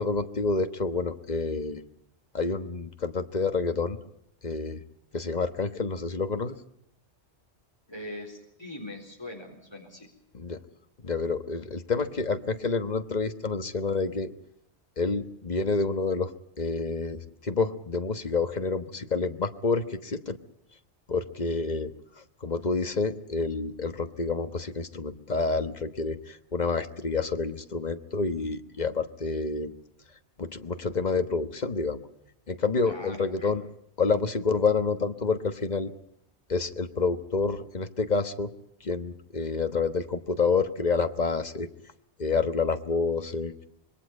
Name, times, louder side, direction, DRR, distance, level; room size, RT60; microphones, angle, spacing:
voice 1, 0.0-1.8 2.3-4.0 4.4-4.8 5.1-6.6 10.3-10.6 11.0-14.3 15.0-16.3 16.6-20.4 21.1-21.9 22.4-29.7 30.4-32.0 32.5-33.6 34.0-35.9 36.5-38.5 38.8-41.7 42.2-43.5, left 4 dB, 40° left, 9 dB, 1.3 m, -28 dB
voice 2, 7.9-10.1 32.8-33.5, left 1 dB, 25° left, 1 dB, 4.1 m, -41 dB
26.0 x 22.5 x 5.4 m, 0.72 s
omnidirectional pair, 1.1 m